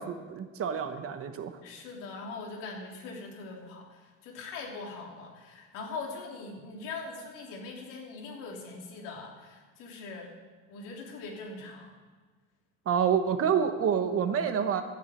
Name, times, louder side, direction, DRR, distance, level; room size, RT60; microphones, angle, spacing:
voice 1, 0.0-1.5 12.9-14.8, right 7 dB, 45° right, 8 dB, 1.2 m, -28 dB
voice 2, 1.6-10.3 10.7-11.9, left 3 dB, 90° left, -1 dB, 3.2 m, -41 dB
12.5 x 7.4 x 8.2 m, 1.4 s
cardioid pair, 120°, 31 cm